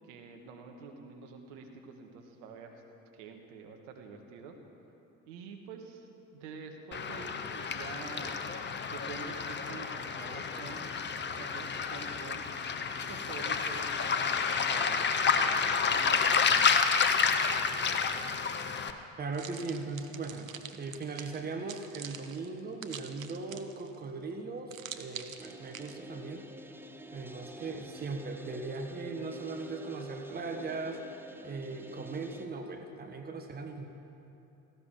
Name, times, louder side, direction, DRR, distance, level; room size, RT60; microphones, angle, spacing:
voice 1, 0.0-2.8 3.1-4.6 5.2-8.4 8.9-10.9 11.4-12.4 13.1-14.2 14.7-17.2, right 5 dB, 60° right, 3 dB, 1.8 m, -47 dB
Waves surf, 6.9-18.9, left 6 dB, 25° left, 1.0 m, -30 dB
voice 2, 19.2-26.4 27.1-31.0 31.4-33.9, right 3 dB, 25° right, 4 dB, 1.4 m, -39 dB
sound 1, 19.3-24.0 24.7-26.0, right 8 dB, 85° right, 0.8 m, -45 dB
sound 2, 25.4-32.4, equal, 5° right, 1.0 m, -47 dB
17.5 x 16.0 x 4.7 m, 2.9 s
figure-of-eight pair, 65°, 39 cm